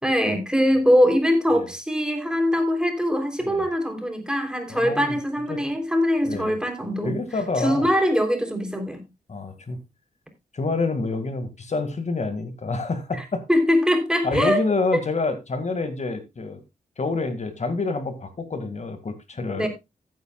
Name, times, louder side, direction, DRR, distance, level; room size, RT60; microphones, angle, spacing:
voice 1, 0.0-7.1 7.6-9.0 13.1-14.6 14.9-15.0 19.6-19.7, equal, 5° right, 5 dB, 3.4 m, -22 dB
voice 2, 4.7-5.2 5.5-5.6 6.2-6.5 7.0-7.8 9.3-9.8 10.5-13.4 14.2-16.6 17.0-19.7, left 3 dB, 50° left, 8 dB, 2.1 m, -27 dB
15.0 x 9.3 x 2.4 m, 0.23 s
cardioid pair, 75°, 15 cm